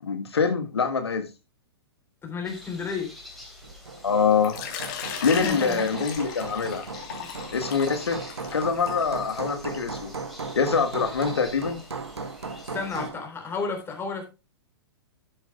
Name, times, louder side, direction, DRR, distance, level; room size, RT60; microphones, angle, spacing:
voice 1, 0.0-1.3 4.0-4.6 5.0-6.8 7.5-8.2 8.5-10.1 10.5-11.8, left 5 dB, 75° left, 1.6 m, -24 dB
voice 2, 2.2-3.1 5.4-5.9 12.7-14.3, left 4 dB, 15° left, 3.8 m, -31 dB
sound 1, 2.4-13.1, left 1 dB, ahead, 3.5 m, -46 dB
Hammer, 3.6-13.3, right 4 dB, 80° right, 1.7 m, -37 dB
Water / Liquid, 4.4-10.0, left 8 dB, 45° left, 3.2 m, -37 dB
12.0 x 9.7 x 2.3 m
figure-of-eight pair, 110°, 14 cm